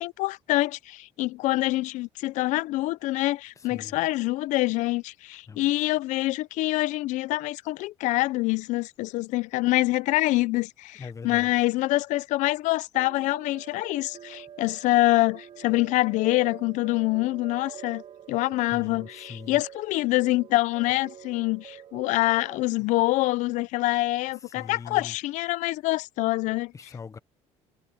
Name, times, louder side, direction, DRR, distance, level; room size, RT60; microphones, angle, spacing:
voice 1, 0.0-18.0 18.3-26.7, left 19 dB, 75° left, 0.6 m, -25 dB
voice 2, 3.6-4.0 5.5-5.7 11.0-11.7 18.7-19.6 22.8-22.9 24.4-25.1 26.7-27.2, left 5 dB, 25° left, 0.9 m, -42 dB
sound 1, 12.9-22.5, right 9 dB, 50° right, 4.5 m, -46 dB
cardioid pair, 110°, 13 cm